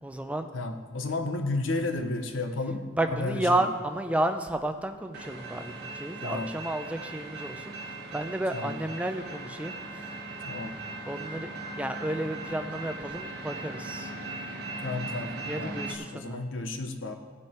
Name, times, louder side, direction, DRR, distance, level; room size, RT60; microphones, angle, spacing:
voice 1, 0.0-0.5 2.9-7.8 8.1-9.7 11.1-11.5 11.8-14.1 15.5-16.4, right 1 dB, 5° right, 6 dB, 0.5 m, -31 dB
voice 2, 0.5-3.5 6.2-6.5 8.5-8.8 10.5-10.7 14.8-17.1, left 2 dB, 75° left, 7 dB, 0.9 m, -32 dB
sound 1, 5.1-15.9, right 2 dB, 55° right, 1.4 m, -39 dB
16.0 x 6.4 x 4.5 m, 1.5 s
head